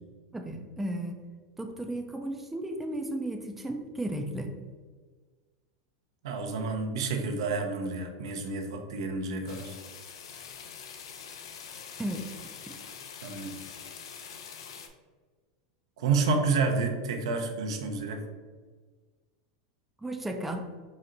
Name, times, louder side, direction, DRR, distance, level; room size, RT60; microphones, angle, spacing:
voice 1, 0.3-1.2 1.6-4.5 12.0-12.3 12.7-12.8 20.0-20.7, right 1 dB, 5° right, 3 dB, 0.4 m, -34 dB
voice 2, 6.2-9.7 13.2-13.5 16.0-18.2, right 4 dB, 80° right, 4 dB, 0.7 m, -29 dB
sound 1, 9.5-14.9, left 7 dB, 80° left, 0.5 m, -44 dB
4.2 x 2.5 x 3.9 m, 1.4 s
supercardioid pair, 120°, 3 cm